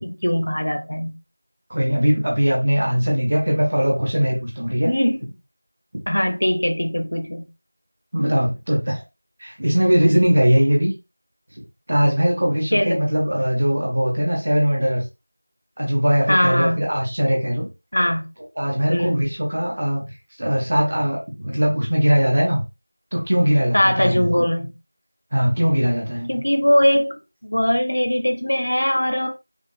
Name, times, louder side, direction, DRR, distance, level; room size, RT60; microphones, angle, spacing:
voice 1, 0.0-1.1 4.9-5.2 6.1-7.5 12.7-13.0 16.3-16.9 17.9-18.3 18.9-19.2 23.7-24.7 26.3-27.1 27.4-29.3, equal, 35° left, 0.6 m, -20 dB
voice 2, 1.7-4.9 8.1-9.0 9.4-10.9 11.9-15.0 15.8-17.7 18.6-20.0 20.4-22.6 23.1-24.5 25.3-26.3, equal, 15° right, 0.6 m, -20 dB
4.9 x 2.4 x 3.2 m
figure-of-eight pair, 180°, 0 cm